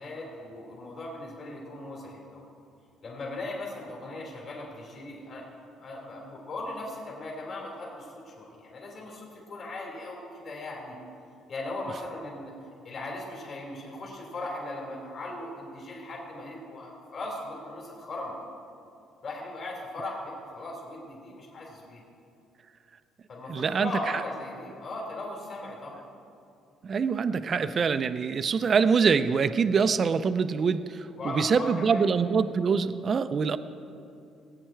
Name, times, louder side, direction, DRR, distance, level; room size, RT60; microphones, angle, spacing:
voice 1, 0.0-2.4 3.0-5.4 5.8-11.0 11.5-12.5 12.8-18.4 19.2-22.0 23.3-26.0 31.2-32.1, left 2 dB, 45° left, -2 dB, 3.4 m, -38 dB
voice 2, 23.5-24.2 26.8-33.6, right 5 dB, 40° right, 12 dB, 0.5 m, -25 dB
18.5 x 9.0 x 4.5 m, 2.5 s
cardioid pair, 120°, 0 cm